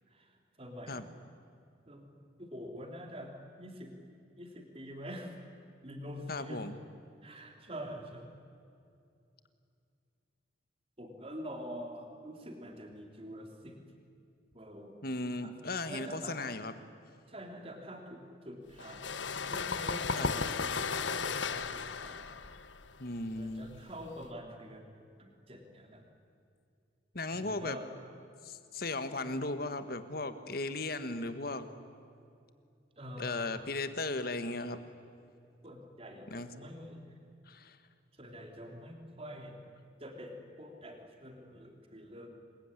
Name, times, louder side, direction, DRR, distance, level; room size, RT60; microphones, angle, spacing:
voice 1, 0.1-1.1 1.9-2.1 2.4-4.0 4.4-5.4 5.8-6.7 7.2-8.3 11.0-13.8 14.5-15.0 15.4-15.5 15.9-16.4 17.3-19.1 19.5-22.3 23.4-24.9 25.2-26.1 27.3-27.9 29.2-29.4 33.0-33.8 35.6-37.2 38.1-39.6 40.0-42.3, equal, 30° right, 3 dB, 3.5 m, -46 dB
voice 2, 6.3-6.7 15.0-16.7 20.1-20.3 23.0-23.8 27.1-27.8 28.4-31.7 33.2-34.8 36.3-36.5 37.5-37.8, left 2 dB, 50° left, 10 dB, 1.7 m, -36 dB
sound 1, 18.8-24.3, left 5 dB, 80° left, 1.1 m, -35 dB
27.5 x 22.0 x 10.0 m, 2.5 s
head